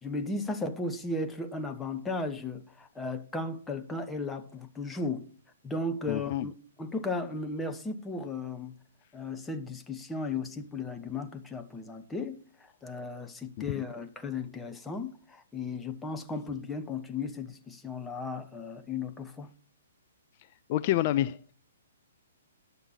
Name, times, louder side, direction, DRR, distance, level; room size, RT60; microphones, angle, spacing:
voice 1, 0.0-5.3 5.6-6.5 6.8-8.7 9.1-12.4 12.8-19.5, left 3 dB, 10° left, 0.9 m, -35 dB
voice 2, 6.1-6.5 13.7-13.8 20.7-21.5, left 13 dB, 35° left, 0.4 m, -28 dB
10.5 x 6.9 x 4.2 m
figure-of-eight pair, 120°, 0 cm